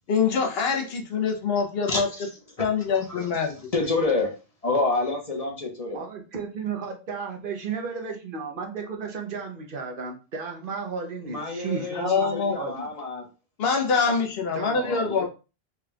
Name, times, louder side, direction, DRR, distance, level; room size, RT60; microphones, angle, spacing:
voice 1, 0.1-2.1 2.6-3.7 12.0-12.6 13.6-15.3, left 5 dB, 70° left, 4 dB, 0.9 m, -24 dB
voice 2, 1.9-2.3 2.7-4.3 4.6-6.0 11.2-13.3 14.7-15.3, left 3 dB, 40° left, 0 dB, 1.0 m, -29 dB
voice 3, 5.9-12.9 14.5-14.8, right 5 dB, 60° right, 3 dB, 0.8 m, -34 dB
3.7 x 3.3 x 2.3 m, 0.31 s
omnidirectional pair, 1.1 m